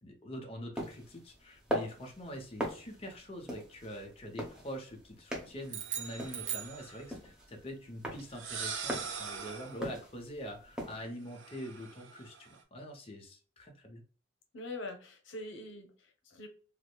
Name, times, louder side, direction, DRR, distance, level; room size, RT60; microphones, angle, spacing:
voice 1, 0.0-14.0, equal, 30° left, 2 dB, 0.8 m, -44 dB
sound 1, 0.8-11.0, equal, 5° right, 0.9 m, -42 dB
sound 2, 5.7-7.4, right 9 dB, 40° right, 0.7 m, -40 dB
sound 3, 5.8-7.1 8.2-9.9 11.3-12.6, right 6 dB, 80° right, 0.7 m, -43 dB
voice 2, 14.5-16.5, left 2 dB, 90° left, 4 dB, 0.8 m, -44 dB
4.7 x 2.1 x 2.2 m, 0.40 s
head